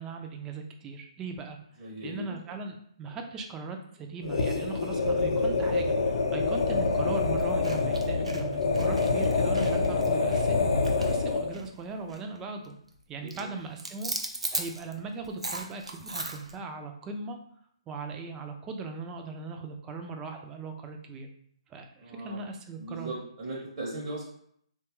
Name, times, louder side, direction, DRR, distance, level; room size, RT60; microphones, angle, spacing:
voice 1, 0.0-10.7 11.0-12.7 13.1-14.1 14.5-17.4 17.9-21.3 21.7-23.1, right 4 dB, 15° right, 4 dB, 0.3 m, -39 dB
voice 2, 1.8-2.5 11.3-11.6 13.2-13.5 22.0-22.5 22.8-24.2, right 1 dB, 45° right, -3 dB, 0.7 m, -39 dB
sound 1, 4.2-11.6, left 3 dB, 65° left, 0.5 m, -26 dB
sound 2, 6.8-6.9 7.4-11.8 12.1-12.4 12.6-13.0 13.3-16.6, right 2 dB, 90° right, 0.5 m, -37 dB
3.0 x 2.2 x 3.0 m, 0.67 s
figure-of-eight pair, 140°, 3 cm